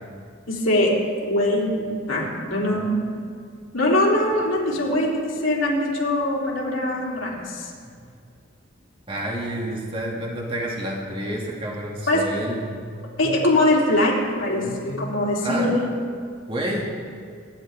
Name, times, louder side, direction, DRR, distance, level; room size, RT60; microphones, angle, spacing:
voice 1, 0.5-0.9 1.2-3.0 3.7-7.7 12.1-12.2 13.2-15.9, left 1 dB, 80° left, -5 dB, 3.7 m, -22 dB
voice 2, 9.1-12.7 15.4-15.7 16.5-16.9, right 1 dB, 30° right, -3 dB, 2.6 m, -29 dB
26.0 x 11.0 x 3.7 m, 2.2 s
head